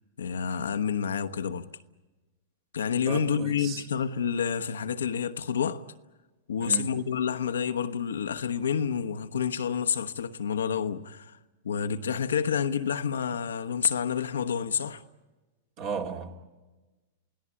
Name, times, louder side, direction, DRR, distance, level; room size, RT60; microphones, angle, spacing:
voice 1, 0.2-1.7 2.7-5.9 6.5-11.4 11.6-15.0, left 7 dB, 85° left, 1.0 m, -29 dB
voice 2, 3.1-3.8 6.6-6.9 15.8-16.4, right 6 dB, 50° right, 2.6 m, -35 dB
28.5 x 17.5 x 8.7 m
hypercardioid pair, 115°, 0 cm